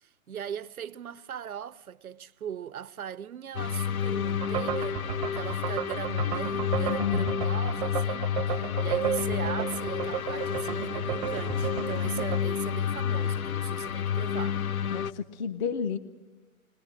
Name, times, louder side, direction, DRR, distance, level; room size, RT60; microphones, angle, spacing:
voice 1, 0.0-14.6, right 8 dB, 90° right, 0.7 m, -40 dB
sound 1, 3.5-15.1, left 8 dB, 80° left, 0.7 m, -30 dB
sound 2, 4.4-12.4, right 10 dB, 25° right, 0.6 m, -33 dB
voice 2, 6.9-7.4 14.9-16.0, left 6 dB, 35° left, 0.8 m, -32 dB
21.0 x 20.5 x 7.5 m
hypercardioid pair, 135°, 42 cm